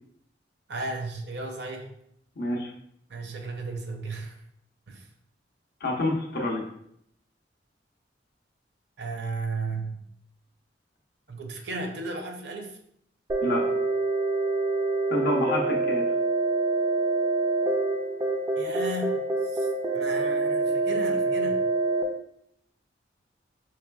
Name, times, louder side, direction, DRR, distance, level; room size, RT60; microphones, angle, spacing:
voice 1, 0.7-1.9 3.1-4.4 4.9-5.1 9.0-10.0 11.3-12.8 18.6-19.2 19.4-21.6, right 2 dB, 65° right, 4 dB, 0.6 m, -35 dB
voice 2, 2.4-2.7 5.8-6.6 13.4-13.6 15.1-16.0, left 1 dB, 60° left, 0 dB, 0.7 m, -27 dB
sound 1, 13.3-22.0, right 3 dB, 20° right, 0.3 m, -26 dB
4.8 x 3.2 x 2.3 m, 0.73 s
head